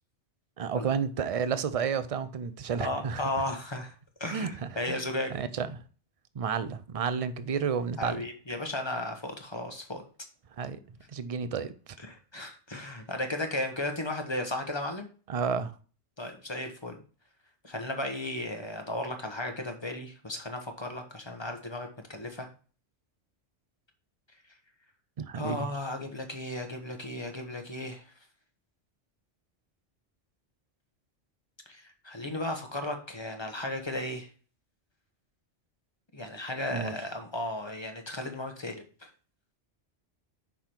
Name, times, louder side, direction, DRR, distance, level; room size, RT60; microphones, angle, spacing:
voice 1, 0.6-3.2 4.3-4.5 4.9-5.0 5.3-5.8 6.3-8.2 10.6-10.8 11.1-11.7 15.3-15.7 25.2-25.7 36.7-36.9, right 6 dB, 50° right, 0.4 m, -31 dB
voice 2, 2.8-3.9 4.2-5.4 8.0-10.0 12.0-15.1 16.2-17.0 17.6-22.5 25.3-28.0 31.7-34.3 36.1-39.1, left 1 dB, 25° left, 1.0 m, -35 dB
5.8 x 5.0 x 4.3 m
omnidirectional pair, 1.2 m